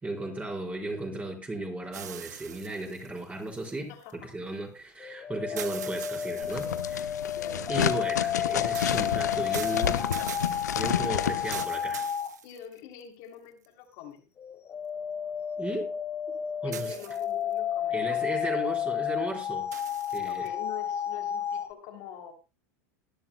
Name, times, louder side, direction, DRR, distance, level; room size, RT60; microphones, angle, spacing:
voice 1, 0.0-7.1 7.7-10.2 10.7-12.1 15.6-15.9 16.6-16.9 17.9-19.7 20.1-20.5, right 2 dB, 15° right, 4.6 m, -35 dB
sound 1, 1.9-4.1 5.6-7.2 8.7-13.0 13.6-13.7 16.7-17.5 19.7-20.5, right 10 dB, 80° right, 0.6 m, -43 dB
voice 2, 3.9-4.6 5.5-5.7 7.3-7.7 11.4-11.5 12.4-14.3 16.6-18.3 20.2-22.3, left 9 dB, 60° left, 3.1 m, -45 dB
sound 2, 5.0-12.4 14.4-21.7, left 9 dB, 30° left, 1.2 m, -31 dB
sound 3, 6.4-11.6, left 9 dB, 85° left, 1.0 m, -30 dB
20.0 x 11.5 x 2.3 m
hypercardioid pair, 90°, 9 cm